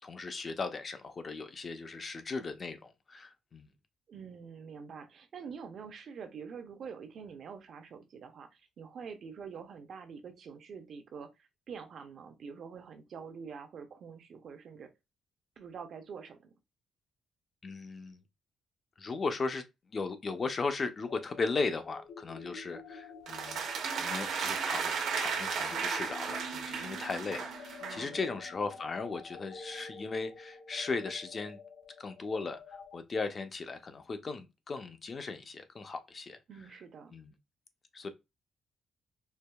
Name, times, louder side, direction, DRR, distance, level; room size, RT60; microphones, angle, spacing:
voice 1, 0.0-3.7 17.6-18.2 19.0-19.6 19.9-23.6 24.0-31.6 32.0-36.4 37.1-37.3 37.9-38.1, left 4 dB, 30° left, 0.4 m, -37 dB
voice 2, 4.1-14.9 15.6-16.5 27.8-28.4 36.5-37.1, right 6 dB, 50° right, 0.5 m, -46 dB
sound 1, 21.1-33.0, left 3 dB, 75° left, 0.9 m, -48 dB
sound 2, 23.3-28.1, right 6 dB, 75° right, 0.9 m, -35 dB
4.5 x 2.7 x 2.2 m
cardioid pair, 165°, 0 cm